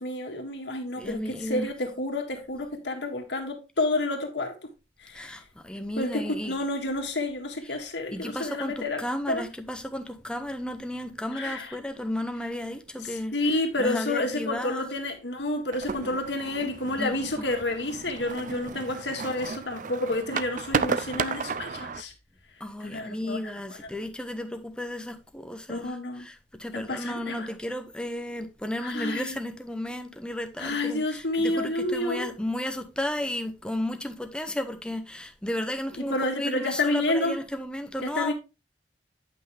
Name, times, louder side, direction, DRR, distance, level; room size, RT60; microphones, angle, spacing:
voice 1, 0.0-4.7 5.0-5.4 6.0-9.4 11.3-11.8 13.0-22.1 22.8-23.4 25.7-26.3 26.7-27.5 28.8-29.4 30.6-32.3 36.1-37.4 38.0-38.3, left 2 dB, 80° left, 1.8 m, -30 dB
voice 2, 1.0-1.7 5.1-6.5 8.1-13.3 13.8-14.9 17.0-17.4 22.6-38.3, left 1 dB, 5° left, 1.0 m, -33 dB
sound 1, 15.7-22.0, right 5 dB, 45° right, 0.5 m, -33 dB
9.4 x 5.8 x 3.4 m
head